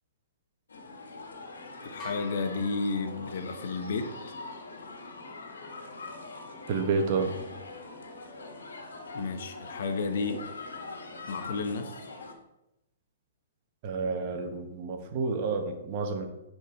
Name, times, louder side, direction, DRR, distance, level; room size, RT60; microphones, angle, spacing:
sound 1, 0.7-12.3, left 3 dB, 80° left, 1.8 m, -43 dB
voice 1, 1.8-4.1 9.1-10.4 11.3-12.0, left 4 dB, 65° left, 7 dB, 1.2 m, -32 dB
sound 2, 2.0-3.8, left 2 dB, 20° left, 3.3 m, -46 dB
voice 2, 6.7-7.3 13.8-16.3, right 4 dB, 45° right, 4 dB, 1.4 m, -29 dB
10.5 x 4.6 x 4.6 m, 0.92 s
hypercardioid pair, 125°, 0 cm